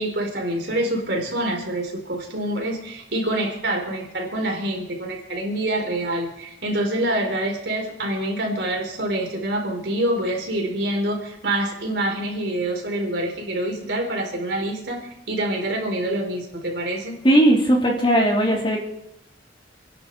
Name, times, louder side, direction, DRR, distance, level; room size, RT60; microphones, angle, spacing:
voice 1, 0.0-17.2, right 1 dB, 70° right, 1 dB, 4.4 m, -26 dB
voice 2, 17.2-18.8, right 1 dB, 30° left, -1 dB, 3.2 m, -17 dB
28.5 x 10.5 x 4.1 m, 0.83 s
head